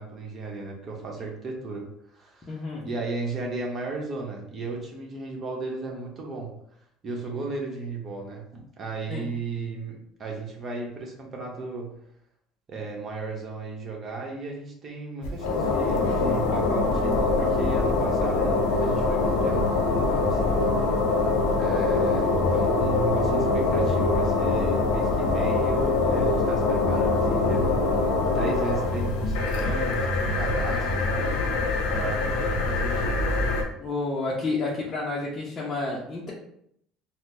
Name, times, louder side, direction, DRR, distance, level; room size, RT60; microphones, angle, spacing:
voice 1, 0.0-6.5 7.0-11.9 12.7-20.6 21.0-21.1 21.6-31.3 31.9-33.4, right 3 dB, 40° right, 0 dB, 1.0 m, -35 dB
voice 2, 2.5-2.8 9.1-9.2 32.0-32.3 33.8-36.3, left 3 dB, 25° left, -6 dB, 0.7 m, -30 dB
sound 1, 15.2-33.6, left 3 dB, 85° left, 0.6 m, -24 dB
4.3 x 2.1 x 2.6 m, 0.72 s
supercardioid pair, 100°, 0 cm